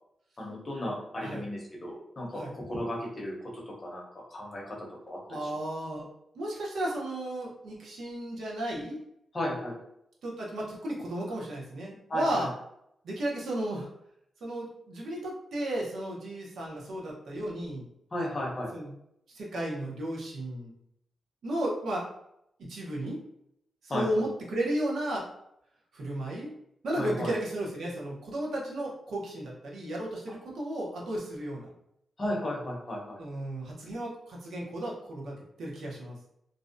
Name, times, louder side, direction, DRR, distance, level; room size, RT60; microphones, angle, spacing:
voice 1, 0.4-5.5 9.3-9.8 12.1-12.5 18.1-18.7 23.9-24.0 26.9-27.3 32.2-33.2, left 1 dB, 25° left, -3 dB, 0.6 m, -35 dB
voice 2, 5.3-6.0 6.3-9.0 10.2-12.5 13.0-13.9 14.4-17.8 18.7-18.9 19.3-20.7 21.4-22.0 22.7-23.2 23.9-25.2 25.9-26.5 26.8-31.7 33.2-36.2, right 1 dB, 70° right, -3 dB, 0.7 m, -34 dB
2.5 x 2.1 x 2.5 m, 0.78 s
wide cardioid pair, 175°, 0 cm